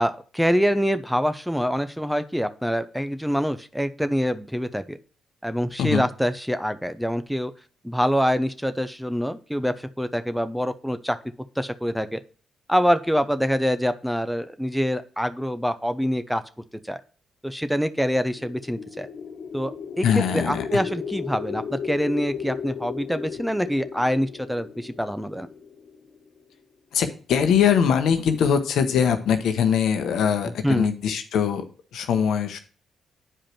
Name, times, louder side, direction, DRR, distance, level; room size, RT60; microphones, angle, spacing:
voice 1, 0.0-5.0 5.4-7.5 7.8-11.2 11.6-12.2 12.7-16.4 16.9-17.0 17.4-19.1 19.5-19.7 20.0-20.1 20.3-25.5 30.6-30.9, equal, ahead, 11 dB, 0.8 m, -25 dB
sound 1, 18.3-26.4, left 7 dB, 50° left, 1.5 m, -35 dB
voice 2, 20.0-20.8 26.9-31.6 31.9-32.6, left 7 dB, 65° left, 8 dB, 1.0 m, -22 dB
8.9 x 4.9 x 4.5 m, 0.39 s
hypercardioid pair, 40°, 0 cm